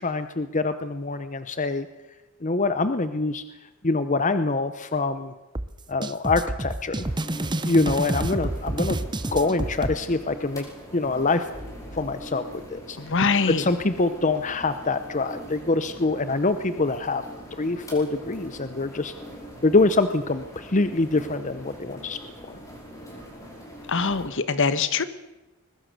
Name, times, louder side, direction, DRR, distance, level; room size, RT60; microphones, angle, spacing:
voice 1, 0.0-1.9 2.4-3.4 3.8-5.3 5.9-7.0 7.6-9.0 9.3-10.7 10.9-11.5 11.9-12.4 12.7-13.0 13.6-17.2 17.5-19.1 19.6-22.2 22.5-22.6, left 3 dB, 35° left, 11 dB, 0.8 m, -25 dB
sound 1, 5.6-10.0, right 1 dB, 20° right, 0.8 m, -29 dB
sound 2, 7.0-24.3, equal, 15° left, 5.6 m, -42 dB
voice 2, 13.0-13.7 23.9-25.0, left 4 dB, 60° left, 13 dB, 1.3 m, -23 dB
22.0 x 20.5 x 6.8 m, 1.0 s
head